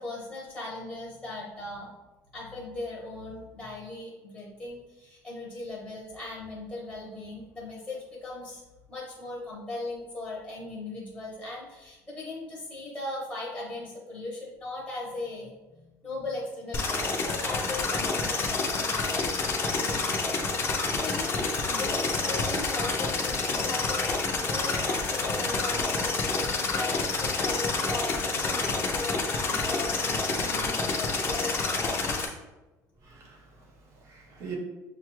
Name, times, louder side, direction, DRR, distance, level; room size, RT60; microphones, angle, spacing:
voice 1, 0.0-1.9 2.3-8.6 8.9-19.3 19.7-32.3, left 2 dB, 5° left, -6 dB, 0.8 m, -38 dB
sound 1, 16.7-32.2, left 3 dB, 35° left, 0.5 m, -28 dB
voice 2, 33.0-34.5, right 7 dB, 45° right, 1 dB, 0.9 m, -44 dB
6.4 x 2.3 x 3.0 m, 1.1 s
cardioid pair, 170°, 7 cm